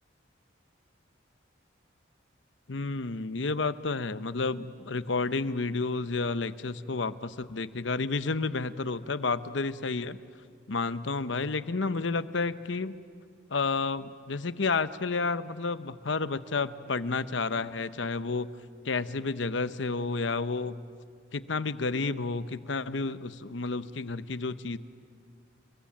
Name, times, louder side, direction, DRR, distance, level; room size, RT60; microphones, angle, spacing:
voice 1, 2.7-10.2 10.7-13.0 13.5-18.5 18.8-20.8 21.3-24.8, left 4 dB, 75° left, 13 dB, 0.9 m, -31 dB
29.5 x 22.0 x 8.8 m, 2.1 s
head